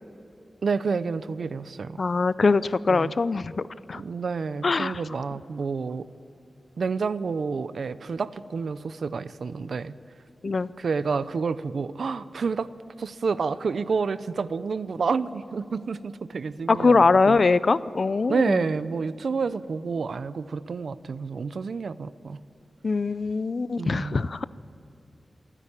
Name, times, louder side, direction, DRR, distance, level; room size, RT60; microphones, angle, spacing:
voice 1, 0.6-2.0 2.9-3.1 3.9-6.1 6.8-9.9 10.4-12.7 13.0-17.4 18.3-22.4 23.8-24.2, right 5 dB, 75° right, 15 dB, 0.6 m, -29 dB
voice 2, 2.0-3.6 3.9-4.0 4.6-5.0 10.4-10.7 16.7-18.6 22.8-24.4, left 4 dB, 50° left, 17 dB, 0.5 m, -22 dB
27.5 x 10.0 x 9.9 m, 2.8 s
wide cardioid pair, 110°, 0 cm